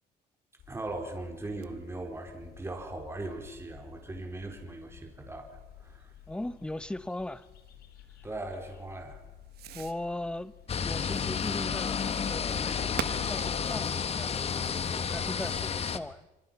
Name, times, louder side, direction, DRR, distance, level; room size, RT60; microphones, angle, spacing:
sound 1, 0.6-15.9, left 10 dB, 70° left, 4.1 m, -54 dB
voice 1, 0.7-6.1 8.2-9.2, right 2 dB, 15° right, 4.5 m, -39 dB
Fireworks, 0.9-15.5, right 12 dB, 70° right, 1.3 m, -49 dB
voice 2, 6.3-7.5 9.7-10.5 10.8-16.3, left 1 dB, 5° left, 0.9 m, -39 dB
sound 2, 10.7-16.0, left 6 dB, 35° left, 1.4 m, -31 dB
27.5 x 25.5 x 5.8 m
cardioid pair, 110°, 17 cm